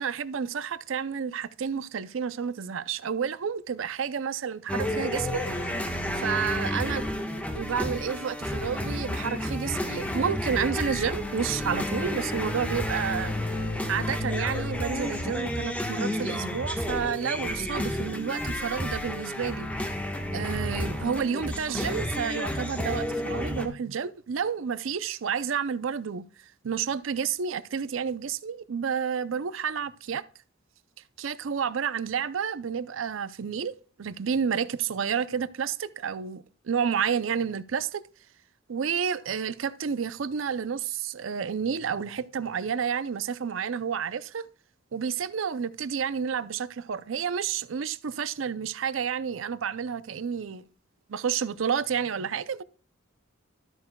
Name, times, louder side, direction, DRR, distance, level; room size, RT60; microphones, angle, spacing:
voice 1, 0.0-5.7 6.2-7.1 7.5-13.3 13.9-19.7 20.3-26.2 26.6-30.2 31.2-33.7 34.0-38.0 38.7-44.5 44.9-50.6 51.1-52.6, right 7 dB, 85° right, 0.5 m, -30 dB
sound 1, 4.7-23.7, left 1 dB, 10° left, 1.2 m, -31 dB
13.0 x 8.7 x 2.2 m
head